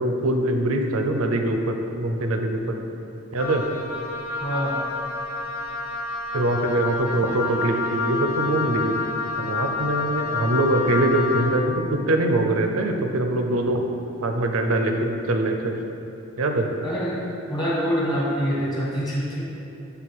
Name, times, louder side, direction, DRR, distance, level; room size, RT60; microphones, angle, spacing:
voice 1, 0.0-2.8 3.3-3.6 6.3-9.0 9.4-13.8 14.2-15.7 16.4-16.7, right 1 dB, 90° right, 4 dB, 0.6 m, -23 dB
Wind instrument woodwind instrument, 3.4-11.6, left 4 dB, 80° left, 0.7 m, -29 dB
voice 2, 4.4-4.9 16.8-17.2 17.5-19.6, equal, 20° left, -6 dB, 1.4 m, -25 dB
7.7 x 3.3 x 4.6 m, 2.7 s
head